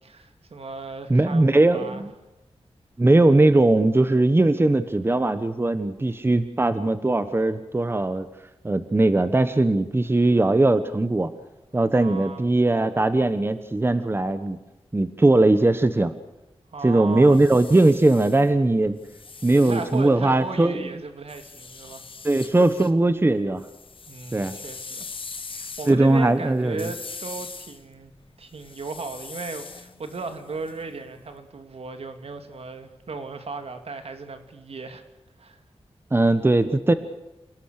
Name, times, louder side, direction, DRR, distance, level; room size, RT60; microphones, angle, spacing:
voice 1, 0.0-2.0 11.9-12.5 16.7-17.4 19.5-22.1 24.1-25.1 25.5-28.1 28.4-35.0 35.4-35.6, right 4 dB, 70° right, 7 dB, 2.8 m, -36 dB
voice 2, 1.1-2.1 3.0-8.3 8.6-11.3 11.7-14.6 14.9-16.1 16.8-19.0 19.4-20.9 22.2-23.7 24.3-24.6 25.9-26.9 36.1-36.9, right 2 dB, 20° right, 11 dB, 1.1 m, -20 dB
sound 1, 17.1-20.6 21.3-22.9 23.3-31.2, left 4 dB, 55° left, 1.7 m, -42 dB
28.0 x 18.5 x 6.7 m, 0.96 s
wide cardioid pair, 125°, 11 cm